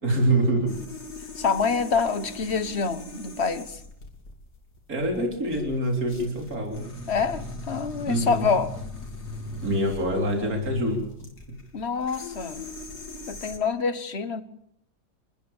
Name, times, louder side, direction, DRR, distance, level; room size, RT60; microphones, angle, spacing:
voice 1, 0.0-0.8 4.9-6.8 8.0-8.5 9.6-11.6, right 1 dB, 60° right, 2 dB, 4.0 m, -26 dB
sound 1, 0.7-13.6, left 2 dB, 70° left, 3.3 m, -39 dB
voice 2, 1.4-3.8 7.1-8.7 11.7-12.6 13.3-14.4, left 5 dB, 45° left, 12 dB, 1.3 m, -26 dB
28.0 x 13.5 x 7.2 m, 0.75 s
omnidirectional pair, 1.7 m